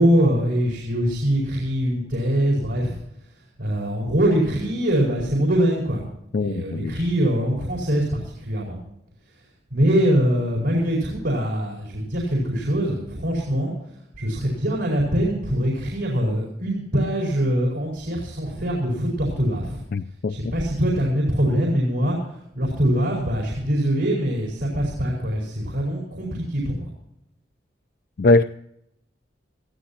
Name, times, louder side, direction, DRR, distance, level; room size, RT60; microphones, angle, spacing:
voice 1, 0.0-3.0 3.4-6.0 6.3-8.8 9.3-9.4 9.7-19.8 20.3-26.9, equal, 80° right, 4.8 m, -23 dB
voice 2, 6.3-6.9 19.9-20.3 28.2-28.4, left 2 dB, 55° left, 0.4 m, -20 dB
21.0 x 14.5 x 2.8 m
head